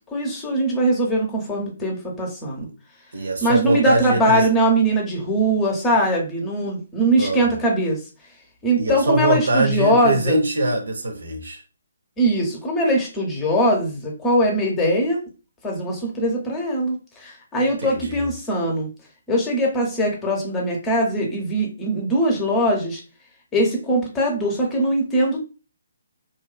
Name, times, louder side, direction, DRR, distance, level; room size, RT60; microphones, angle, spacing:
voice 1, 0.1-2.7 3.4-8.0 8.6-10.4 12.2-15.2 15.6-18.9 19.3-23.0 23.5-25.4, right 1 dB, 15° left, 0 dB, 0.7 m, -21 dB
voice 2, 3.1-4.5 7.2-7.5 8.8-11.6 17.8-18.3, right 2 dB, 65° right, 4 dB, 0.6 m, -23 dB
2.6 x 2.2 x 2.2 m, 0.32 s
figure-of-eight pair, 140°, 0 cm